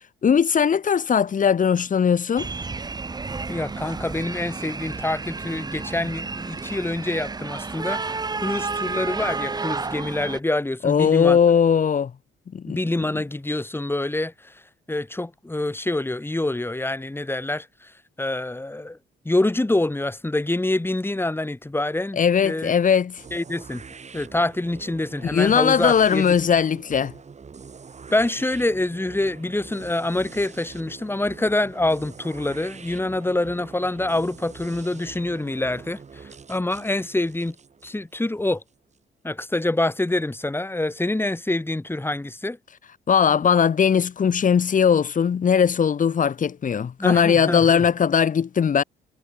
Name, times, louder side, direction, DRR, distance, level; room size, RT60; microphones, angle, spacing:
voice 1, 0.2-2.5 10.8-12.1 12.5-12.8 22.2-23.2 25.3-27.1 43.1-48.8, left 7 dB, 40° left, 1.2 m, -19 dB
sound 1, 2.4-10.4, right 4 dB, 20° right, 0.9 m, -31 dB
voice 2, 3.5-8.0 8.4-11.4 12.7-14.6 14.9-17.9 18.2-19.0 19.2-22.7 23.3-23.8 24.1-26.4 28.1-37.6 37.8-38.6 39.2-42.6 47.0-47.9, left 2 dB, 10° left, 2.7 m, -26 dB
sound 2, 23.2-39.0, right 5 dB, 35° right, 2.6 m, -44 dB
cardioid pair, 90°, 20 cm